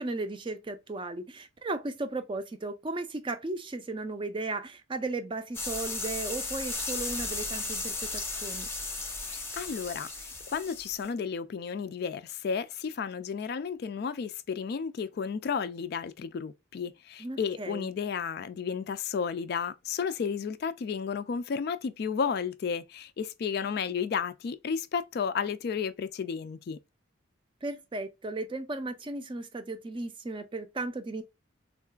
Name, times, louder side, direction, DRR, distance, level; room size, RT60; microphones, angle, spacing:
voice 1, 0.0-8.7 17.2-17.9 27.6-31.2, right 2 dB, 25° right, 0.4 m, -35 dB
sound 1, 5.5-11.1, left 3 dB, 15° left, 0.7 m, -35 dB
voice 2, 9.3-26.8, left 6 dB, 55° left, 0.3 m, -33 dB
3.7 x 2.4 x 2.2 m
head